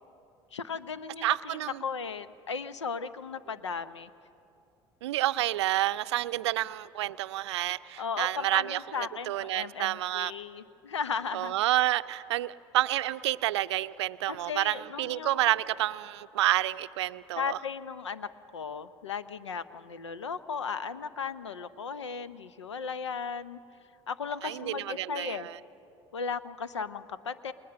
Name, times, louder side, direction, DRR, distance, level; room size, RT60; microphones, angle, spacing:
voice 1, 0.5-4.1 8.0-11.5 14.3-15.5 17.4-23.6 24.1-25.5 26.1-27.5, left 6 dB, 90° left, 0.7 m, -36 dB
voice 2, 1.2-1.8 5.0-10.3 11.3-17.6 24.4-25.6, right 15 dB, 75° right, 0.5 m, -29 dB
29.0 x 20.5 x 6.8 m
hypercardioid pair, 65°, 14 cm